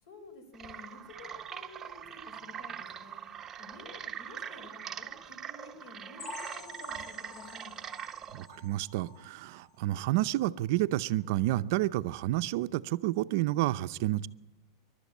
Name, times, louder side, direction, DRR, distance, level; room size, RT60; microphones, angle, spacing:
voice 1, 0.0-3.2 3.6-7.7, left 3 dB, 60° left, 10 dB, 4.6 m, -51 dB
sound 1, 0.5-8.5, right 8 dB, 15° right, 0.8 m, -42 dB
sound 2, 6.2-9.8 10.2-10.4 10.7-10.8 11.3-11.4, left 4 dB, 30° left, 1.7 m, -48 dB
voice 2, 8.3-14.3, right 16 dB, 50° right, 13 dB, 0.6 m, -30 dB
25.5 x 12.0 x 8.5 m, 1.0 s
supercardioid pair, 160°, 2 cm